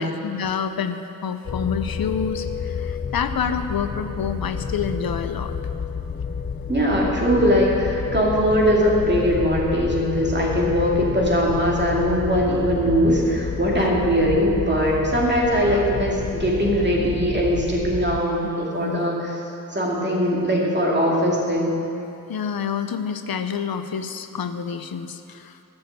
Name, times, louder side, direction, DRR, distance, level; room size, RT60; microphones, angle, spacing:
voice 1, 0.0-5.5 13.7-13.9 18.8-19.1 22.3-25.6, left 7 dB, 85° left, 9 dB, 0.7 m, -28 dB
sound 1, 1.5-18.2, left 6 dB, 30° left, 0.5 m, -29 dB
voice 2, 6.7-19.3 19.7-21.7, equal, 30° right, -3 dB, 2.5 m, -21 dB
12.5 x 7.1 x 7.9 m, 2.8 s
wide cardioid pair, 85°, 35 cm